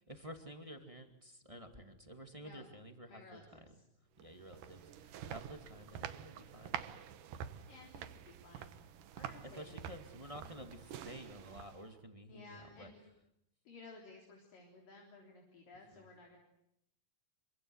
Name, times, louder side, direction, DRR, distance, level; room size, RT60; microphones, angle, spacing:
voice 1, 0.1-3.4 4.2-6.8 9.6-12.9 15.9-16.0, equal, 10° right, 6 dB, 1.8 m, -51 dB
voice 2, 3.1-3.8 7.7-8.7 9.2-9.8 12.3-13.0 13.7-16.4, left 3 dB, 70° left, 1 dB, 5.4 m, -56 dB
sound 1, 4.2-12.0, right 9 dB, 70° right, 2.7 m, -47 dB
26.5 x 24.5 x 8.0 m, 0.79 s
omnidirectional pair, 4.1 m